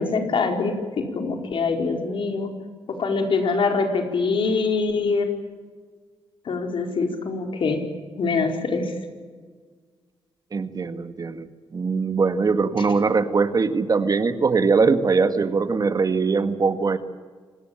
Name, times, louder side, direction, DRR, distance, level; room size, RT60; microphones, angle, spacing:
voice 1, 0.0-2.5 2.9-5.3 6.4-7.8 8.2-8.9, left 4 dB, 65° left, 4 dB, 4.9 m, -24 dB
voice 2, 10.5-17.0, right 4 dB, 40° right, 10 dB, 1.8 m, -21 dB
27.0 x 19.0 x 9.0 m, 1.5 s
cardioid pair, 90°, 9 cm